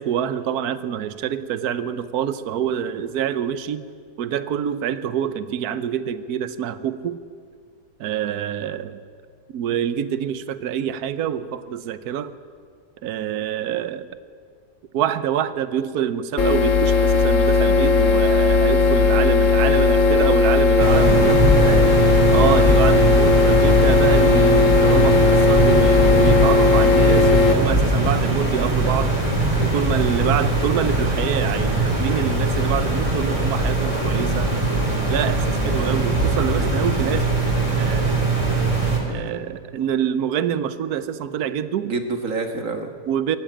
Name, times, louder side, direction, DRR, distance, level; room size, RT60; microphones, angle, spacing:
voice 1, 0.0-3.8 4.2-7.2 8.0-9.0 9.5-12.3 13.0-14.1 14.9-21.4 22.3-29.1 29.6-34.5 35.1-37.3 37.6-38.3 39.0-41.9 43.1-43.4, right 9 dB, 70° right, 13 dB, 1.3 m, -26 dB
sound 1, 16.4-27.5, left 4 dB, 55° left, 1.4 m, -16 dB
voice 2, 20.6-22.0 41.8-42.9, right 4 dB, 55° right, 5 dB, 1.9 m, -27 dB
sound 2, 20.8-39.0, right 2 dB, 20° right, 4.1 m, -21 dB
23.5 x 14.5 x 8.9 m, 2.1 s
omnidirectional pair, 1.7 m